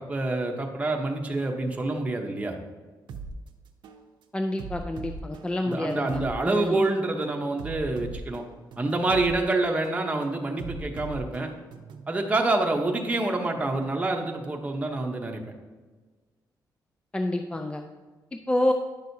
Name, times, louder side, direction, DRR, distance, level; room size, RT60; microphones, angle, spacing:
voice 1, 0.0-2.5 5.7-8.4 8.8-11.5 12.1-15.4, right 2 dB, 15° right, 1 dB, 0.8 m, -27 dB
sound 1, 3.1-3.3 3.8-4.0 4.6-6.3 6.8-7.0 7.6-9.3 9.8-10.0 10.6-12.1, right 5 dB, 80° right, 0.6 m, -40 dB
voice 2, 4.3-6.8 17.1-17.9 18.3-18.7, left 1 dB, 15° left, 5 dB, 0.4 m, -28 dB
10.5 x 6.1 x 2.7 m, 1.3 s
cardioid pair, 130°, 8 cm